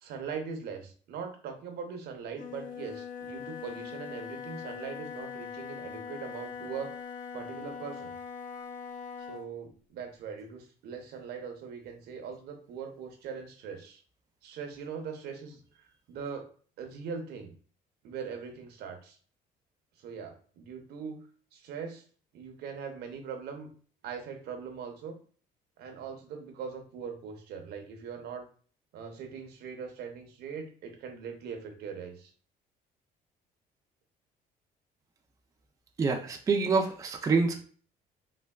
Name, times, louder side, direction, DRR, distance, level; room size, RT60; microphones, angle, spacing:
voice 1, 0.0-6.9 7.3-8.1 9.3-14.0 14.4-15.6 16.1-16.5 16.8-17.5 18.0-19.2 20.0-21.2 21.5-22.0 22.3-23.7 24.0-25.2 25.8-28.5 28.9-32.3, right 6 dB, 70° right, 5 dB, 0.7 m, -41 dB
Wind instrument woodwind instrument, 2.3-9.5, left 6 dB, 55° left, 0.5 m, -41 dB
voice 2, 36.0-37.6, right 4 dB, 20° right, 3 dB, 0.4 m, -26 dB
3.3 x 2.2 x 2.2 m, 0.43 s
cardioid pair, 110°, 17 cm